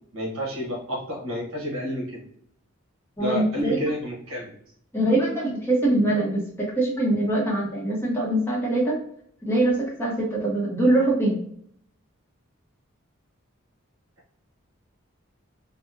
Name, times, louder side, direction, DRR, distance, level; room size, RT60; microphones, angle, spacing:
voice 1, 0.1-2.2 3.2-4.5, equal, 75° right, -2 dB, 1.0 m, -30 dB
voice 2, 3.2-3.8 4.9-9.0 9.4-11.3, right 1 dB, 10° left, -4 dB, 0.7 m, -23 dB
3.7 x 2.0 x 2.5 m, 0.66 s
head